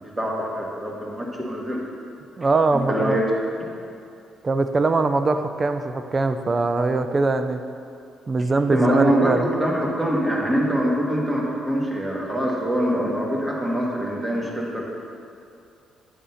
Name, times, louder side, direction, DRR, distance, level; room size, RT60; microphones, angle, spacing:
voice 1, 0.2-1.8 2.7-3.2 8.7-14.9, equal, 15° right, -2 dB, 1.5 m, -24 dB
voice 2, 2.4-3.2 4.4-7.6 8.3-9.4, right 3 dB, 35° right, 9 dB, 0.5 m, -22 dB
9.4 x 3.7 x 5.6 m, 2.6 s
cardioid pair, 90°, 0 cm